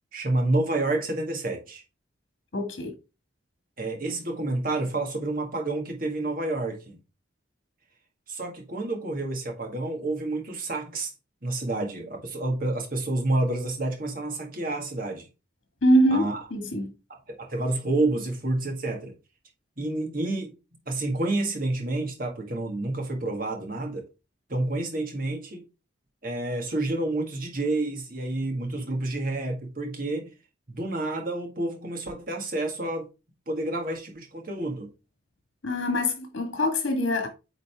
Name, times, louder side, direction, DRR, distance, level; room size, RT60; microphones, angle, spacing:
voice 1, 0.1-1.8 3.8-7.0 8.3-11.1 11.4-15.3 16.1-16.4 17.1-19.1 19.8-20.6 20.9-24.0 24.5-25.6 26.2-30.3 30.7-33.1 33.5-34.9, right 2 dB, 45° right, 1.7 m, -29 dB
voice 2, 2.5-2.9 15.8-16.9 35.6-37.3, equal, 70° left, 1.5 m, -24 dB
8.8 x 4.0 x 3.4 m
head